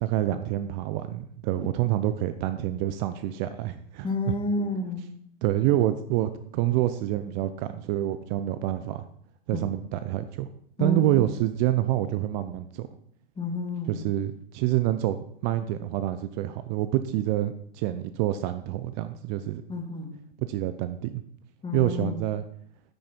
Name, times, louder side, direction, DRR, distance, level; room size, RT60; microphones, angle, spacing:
voice 1, 0.0-4.1 5.4-9.1 9.5-10.5 10.8-12.9 13.9-19.6 20.4-21.2 21.7-22.4, right 13 dB, 45° right, 11 dB, 0.7 m, -27 dB
voice 2, 4.0-5.1 9.5-9.7 10.8-11.2 13.4-14.1 19.7-20.2 21.6-22.2, left 2 dB, 15° left, 1 dB, 2.5 m, -30 dB
9.4 x 8.6 x 4.5 m, 0.65 s
hypercardioid pair, 120°, 31 cm